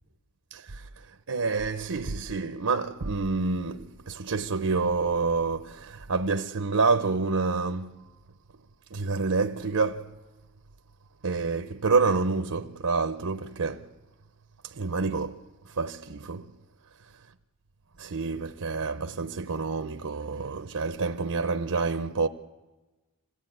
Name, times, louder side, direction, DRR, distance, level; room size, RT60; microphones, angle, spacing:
voice 1, 0.5-0.8 1.3-7.9 8.9-10.1 11.2-13.9 14.7-15.4 15.8-16.5 18.0-22.3, right 4 dB, 80° right, 0.8 m, -28 dB
26.5 x 17.0 x 9.3 m
head